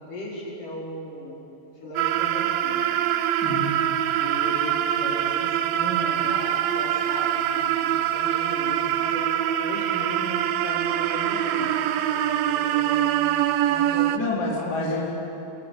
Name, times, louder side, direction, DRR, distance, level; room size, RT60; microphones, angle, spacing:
voice 1, 0.0-1.4 1.8-2.8 4.1-9.3 9.6-13.2 13.7-14.8, left 1 dB, 55° left, -3 dB, 6.2 m, -37 dB
sound 1, 2.0-14.2, right 11 dB, 75° right, 2.6 m, -24 dB
voice 2, 3.4-3.8 14.1-15.2, left 2 dB, 25° left, -4 dB, 4.3 m, -28 dB
28.0 x 23.0 x 8.4 m, 2.9 s
omnidirectional pair, 4.5 m